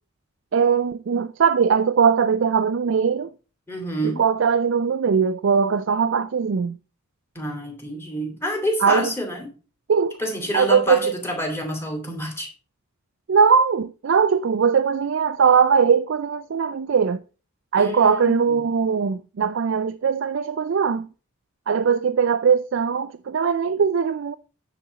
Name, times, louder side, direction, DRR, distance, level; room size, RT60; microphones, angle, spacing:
voice 1, 0.5-3.3 4.0-6.8 8.8-9.1 9.9-10.2 10.5-11.1 13.3-17.2 17.7-21.1 21.7-24.4, right 6 dB, 60° right, 0.4 m, -20 dB
voice 2, 3.7-4.2 7.3-9.5 10.2-12.5 17.8-18.4, equal, 10° left, 2.7 m, -28 dB
10.0 x 4.2 x 6.8 m
head